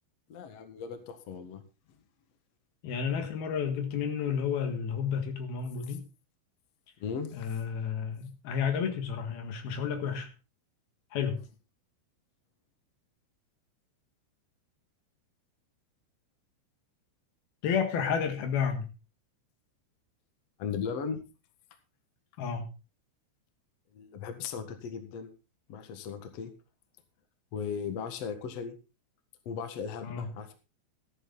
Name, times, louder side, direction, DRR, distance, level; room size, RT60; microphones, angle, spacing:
voice 1, 0.3-1.6 7.0-7.5 20.6-21.2 23.9-25.3 25.7-26.5 27.5-28.8 29.4-30.5, left 6 dB, 90° left, 8 dB, 1.4 m, -37 dB
voice 2, 2.8-6.0 7.3-10.3 11.1-11.4 17.6-18.9 22.4-22.7 30.0-30.3, left 7 dB, 60° left, 6 dB, 3.1 m, -31 dB
14.0 x 11.0 x 3.9 m, 0.31 s
omnidirectional pair, 5.6 m